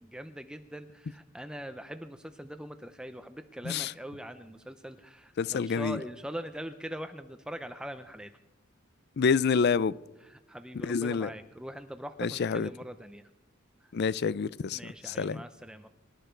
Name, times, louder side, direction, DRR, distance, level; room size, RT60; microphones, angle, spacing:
voice 1, 0.0-8.3 10.2-13.3 13.8-13.9 14.7-15.9, equal, 5° right, 0.6 m, -42 dB
voice 2, 5.4-6.0 9.2-9.9 10.8-11.3 12.2-12.7 13.9-14.8 15.0-15.4, left 5 dB, 55° left, 0.4 m, -27 dB
25.0 x 12.5 x 4.5 m
head